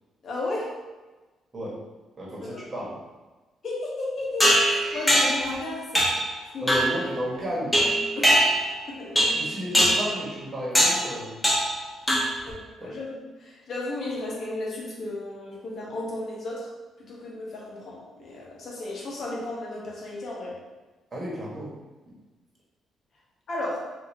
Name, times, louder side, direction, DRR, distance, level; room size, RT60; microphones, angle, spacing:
voice 1, 0.2-0.7 2.4-2.7 3.6-6.1 6.5-6.8 8.2-8.5 8.9-9.5 12.4-16.7 17.0-20.5 23.5-23.8, left 2 dB, 55° left, -4 dB, 1.0 m, -34 dB
voice 2, 2.2-2.9 6.6-7.8 9.3-11.4 12.8-12.9 21.1-21.8 22.0-22.2, equal, 30° right, -5 dB, 1.3 m, -33 dB
sound 1, 4.4-5.5 5.9-6.3 6.7-7.0 7.7-8.8 9.2-9.5 9.7-10.1 10.7-11.0 11.4-11.8 12.1-12.5, equal, 10° left, 1.0 m, -21 dB
4.5 x 2.6 x 2.7 m, 1.2 s
cardioid pair, 90°, 0 cm